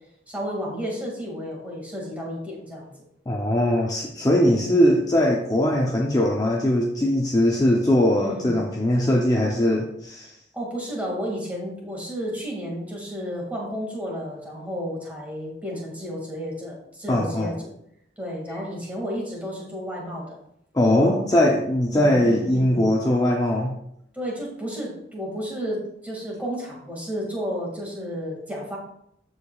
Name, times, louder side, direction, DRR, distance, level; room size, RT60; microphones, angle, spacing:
voice 1, 0.3-2.9 4.4-4.8 8.2-8.6 10.5-17.7 18.2-20.4 21.9-22.9 24.1-28.8, equal, 10° right, -3 dB, 2.1 m, -32 dB
voice 2, 3.3-10.3 17.1-17.5 20.7-23.8, left 1 dB, 20° left, -1 dB, 0.7 m, -21 dB
13.5 x 4.8 x 2.4 m, 0.74 s
head